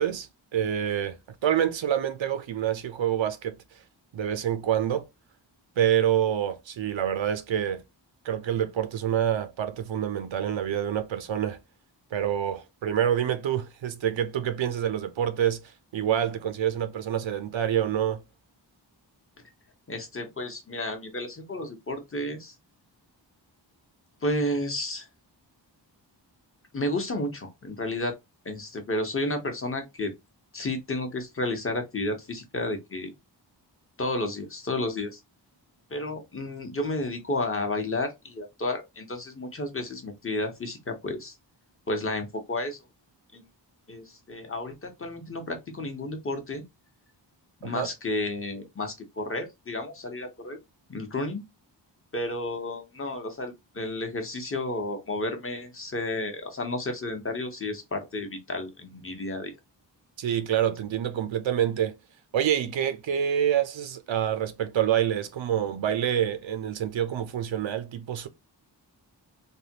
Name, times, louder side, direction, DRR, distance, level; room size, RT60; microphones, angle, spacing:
voice 1, 0.0-3.6 4.1-5.1 5.8-7.8 8.2-11.6 12.1-18.2 47.6-47.9 60.2-61.9 62.3-68.3, right 10 dB, 85° right, 0.6 m, -27 dB
voice 2, 19.9-22.5 24.2-25.1 26.7-28.1 28.4-30.1 30.5-33.1 34.0-35.2 35.9-41.4 41.9-42.8 43.3-43.4 43.9-46.6 47.6-50.6 50.9-51.4 52.1-59.6, left 2 dB, 30° left, 0.9 m, -32 dB
3.4 x 2.2 x 2.7 m
wide cardioid pair, 130°, 44 cm